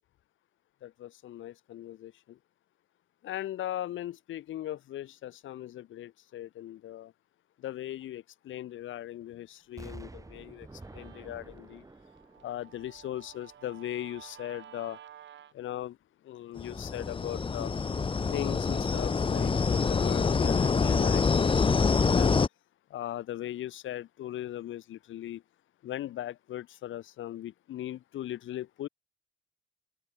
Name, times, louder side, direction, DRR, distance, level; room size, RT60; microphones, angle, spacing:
voice 1, 0.8-2.4 3.2-7.1 7.6-11.8 12.4-15.0 15.5-16.0 16.2-17.8 18.3-22.4 22.9-25.4 25.8-28.9, left 13 dB, 75° left, 2.9 m, -39 dB
Explosion, 9.8-13.7 14.2-14.3, right 2 dB, 15° right, 2.3 m, -49 dB
Guitar, 10.0-15.5, right 10 dB, 65° right, 3.1 m, -53 dB
sound 1, 16.6-22.5, left 5 dB, 25° left, 0.9 m, -26 dB
cardioid pair, 90°, 20 cm